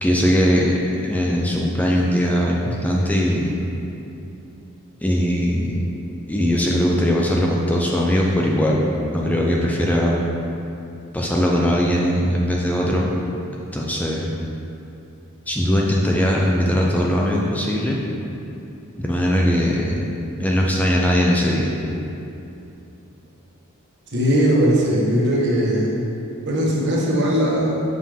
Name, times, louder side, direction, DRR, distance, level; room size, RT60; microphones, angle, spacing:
voice 1, 0.0-3.5 5.0-5.8 6.3-8.9 9.1-10.2 11.1-13.1 13.7-14.3 15.5-18.0 19.0-20.0 20.4-21.7, equal, 5° left, -2 dB, 0.5 m, -20 dB
voice 2, 24.1-26.0 26.4-27.8, equal, 55° right, -4 dB, 1.3 m, -19 dB
7.2 x 5.2 x 3.6 m, 2.8 s
head